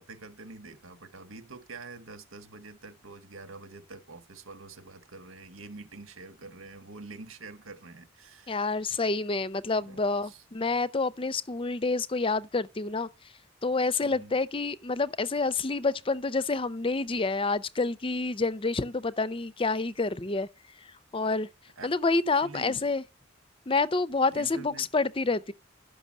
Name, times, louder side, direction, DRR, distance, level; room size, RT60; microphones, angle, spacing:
voice 1, 0.0-8.8 9.8-10.4 14.0-14.3 21.8-22.0 22.4-22.8 24.3-24.9, right 3 dB, 85° right, 1.6 m, -46 dB
voice 2, 8.5-13.1 13.6-20.5 21.1-21.5 21.8-23.0 23.7-25.5, left 3 dB, 25° left, 0.5 m, -28 dB
12.0 x 6.0 x 7.4 m
head